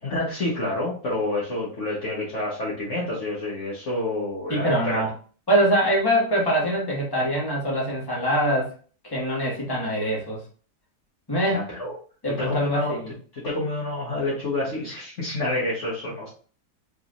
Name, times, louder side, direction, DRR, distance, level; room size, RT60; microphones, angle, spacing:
voice 1, 0.0-5.0 11.5-11.9 12.4-13.0 13.3-16.3, left 2 dB, 45° left, -6 dB, 1.5 m, -28 dB
voice 2, 4.5-5.1 5.5-8.7 9.0-10.4 11.3-11.6 12.2-13.1, right 1 dB, 15° left, -4 dB, 1.7 m, -23 dB
5.1 x 3.6 x 2.5 m, 0.40 s
omnidirectional pair, 1.8 m